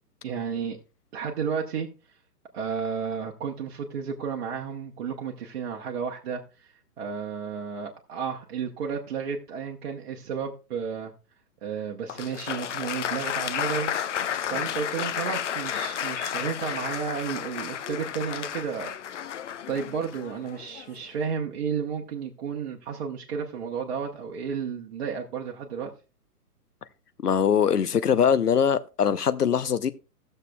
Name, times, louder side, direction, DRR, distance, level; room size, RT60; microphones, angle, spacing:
voice 1, 0.2-0.8 1.1-1.9 2.5-11.1 11.6-14.2 14.5-18.9 19.5-25.9, right 6 dB, 40° right, 1.1 m, -32 dB
Applause, 12.1-21.0, left 9 dB, 50° left, 0.5 m, -32 dB
voice 2, 27.2-29.9, left 7 dB, 80° left, 0.9 m, -22 dB
17.0 x 6.7 x 2.3 m
figure-of-eight pair, 130°, 47 cm